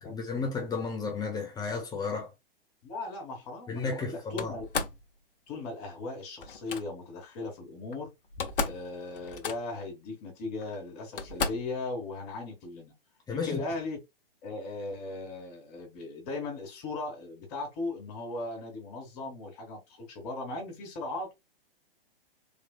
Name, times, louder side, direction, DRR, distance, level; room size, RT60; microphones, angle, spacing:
voice 1, 0.0-2.3 3.7-4.5 13.3-13.6, left 4 dB, 15° left, 1.0 m, -33 dB
voice 2, 2.8-4.6 5.5-8.1 8.6-12.9 13.3-14.0 14.4-21.3, left 2 dB, 40° left, 1.9 m, -38 dB
Slam, 4.4-5.0 6.4-6.8 7.9-8.0 8.2-8.9 9.1-9.8 10.6-10.7 11.2-11.7, left 4 dB, 65° left, 0.8 m, -33 dB
3.9 x 3.2 x 2.3 m
figure-of-eight pair, 115°, 30 cm